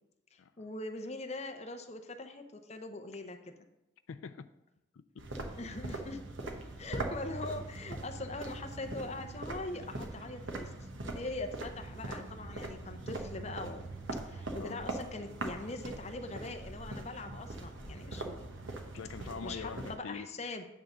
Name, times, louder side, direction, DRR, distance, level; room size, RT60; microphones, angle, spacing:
voice 1, 0.3-3.5 5.6-10.7 11.1-13.8 14.1-18.4 19.4-20.7, left 2 dB, 35° left, 6 dB, 0.7 m, -42 dB
voice 2, 4.1-4.5 4.9-5.3 14.6-14.8 18.9-20.3, left 5 dB, 90° left, 12 dB, 0.4 m, -44 dB
sound 1, 5.2-20.0, right 2 dB, 75° right, 1.1 m, -41 dB
9.4 x 3.7 x 6.7 m, 0.92 s
head